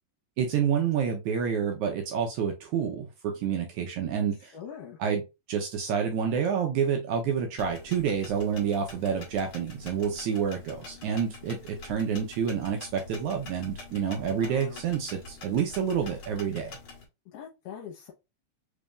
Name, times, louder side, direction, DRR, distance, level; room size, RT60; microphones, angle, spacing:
voice 1, 0.4-4.5 5.0-5.2 5.5-16.7, right 7 dB, 75° right, 3 dB, 2.0 m, -28 dB
voice 2, 4.5-5.0 14.3-14.8 17.3-18.1, left 8 dB, 80° left, 0 dB, 2.4 m, -43 dB
sound 1, 7.6-17.0, left 3 dB, 50° left, 1.8 m, -46 dB
5.2 x 3.4 x 2.3 m, 0.24 s
omnidirectional pair, 3.8 m